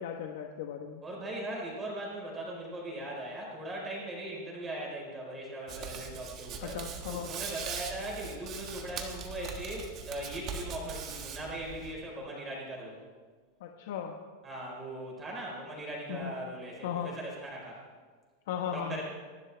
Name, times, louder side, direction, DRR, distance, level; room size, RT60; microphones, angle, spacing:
voice 1, 0.0-1.0 6.6-7.3 13.6-14.1 16.1-16.3 16.8-17.1 18.5-19.0, left 8 dB, 65° left, 2 dB, 1.3 m, -36 dB
voice 2, 1.0-6.8 7.2-13.0 14.4-17.8 18.7-19.0, right 1 dB, 10° right, -3 dB, 4.5 m, -39 dB
Hands, 5.7-11.9, right 6 dB, 30° right, 1.6 m, -41 dB
26.0 x 12.0 x 3.5 m, 1.5 s
supercardioid pair, 170°, 0 cm